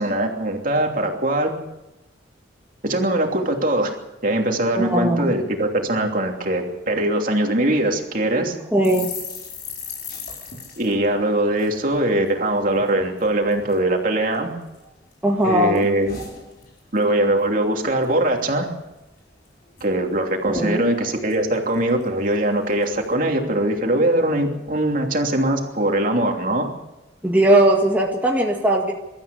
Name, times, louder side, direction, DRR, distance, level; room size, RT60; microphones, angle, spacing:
voice 1, 0.0-1.5 2.8-3.9 4.2-8.6 10.8-14.5 15.4-16.2 16.9-18.7 19.8-26.7, right 1 dB, 45° right, 2 dB, 3.0 m, -21 dB
voice 2, 4.7-5.3 8.7-9.1 15.2-15.9 20.5-20.8 27.2-28.9, right 1 dB, 10° right, -1 dB, 1.8 m, -18 dB
sound 1, 8.8-12.4 12.7-12.9 13.2-13.8 14.3-15.1 15.4-17.1 17.4-17.6 17.9-18.5 18.8-18.9 19.2-19.9 20.1-20.2 20.4-22.3 22.8-23.1, left 4 dB, 50° left, 5.2 m, -38 dB
24.0 x 13.5 x 8.3 m, 1.0 s
head